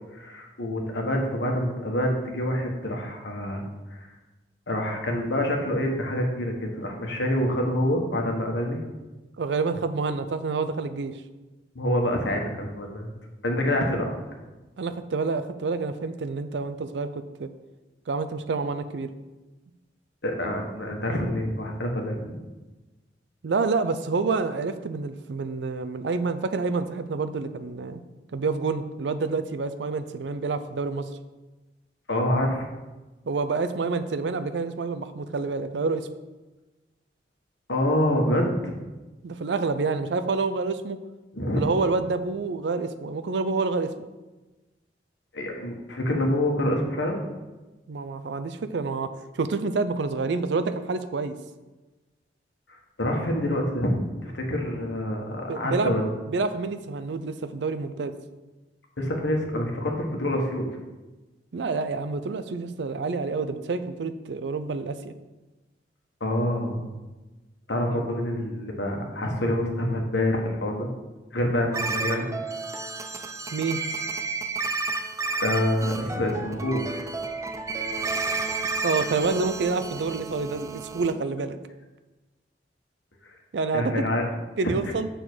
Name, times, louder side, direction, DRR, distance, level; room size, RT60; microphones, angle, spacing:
voice 1, 0.1-3.6 4.7-8.8 11.7-13.1 13.4-14.1 20.2-22.4 32.1-32.7 37.7-38.7 41.3-41.6 45.3-47.2 53.0-56.2 59.0-60.6 66.2-66.9 67.7-70.9 71.3-72.2 75.4-77.0 83.3-83.4 83.7-84.2, left 1 dB, 75° left, 1 dB, 1.3 m, -26 dB
voice 2, 9.4-11.1 14.8-17.5 18.1-19.1 23.4-28.0 28.3-31.1 33.3-36.1 39.2-41.0 41.5-43.9 47.9-49.1 49.3-51.4 55.5-56.0 56.3-58.1 61.5-65.1 67.9-68.1 73.5-73.8 78.8-81.6 83.5-84.1 84.6-85.1, right 4 dB, 70° right, 11 dB, 0.5 m, -28 dB
sound 1, 71.7-81.1, right 3 dB, 15° right, 0.4 m, -31 dB
7.0 x 3.8 x 6.1 m, 1.1 s
head